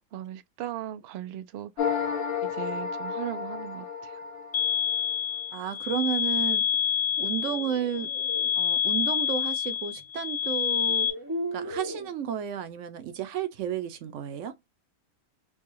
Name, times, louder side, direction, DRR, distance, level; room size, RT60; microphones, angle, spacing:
voice 1, 0.1-2.1 2.4-4.2, right 12 dB, 80° right, 0.5 m, -38 dB
sound 1, 1.8-5.2, left 6 dB, 60° left, 1.0 m, -32 dB
sound 2, 4.5-11.1, left 9 dB, 25° left, 0.7 m, -27 dB
voice 2, 5.5-6.7 7.2-8.1 8.5-11.1 11.5-14.6, right 8 dB, 60° right, 0.9 m, -32 dB
sound 3, 7.2-8.5 10.0-10.1 10.7-12.1, right 1 dB, 25° right, 0.5 m, -37 dB
4.6 x 2.2 x 3.0 m
omnidirectional pair, 1.6 m